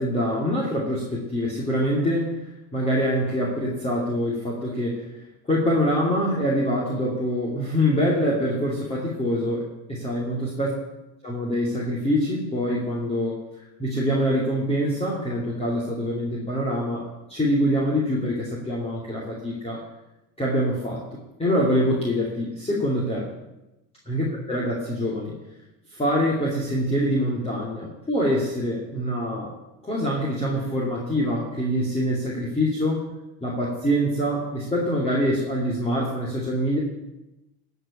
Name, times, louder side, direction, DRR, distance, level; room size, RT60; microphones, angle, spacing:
voice 1, 0.0-2.5 2.7-5.1 5.4-10.7 11.2-19.8 20.4-21.0 21.4-23.3 24.1-25.3 25.9-29.5 29.8-33.0 33.4-36.8, equal, 15° left, -4 dB, 2.8 m, -25 dB
14.0 x 5.5 x 8.6 m, 0.96 s
supercardioid pair, 110°, 46 cm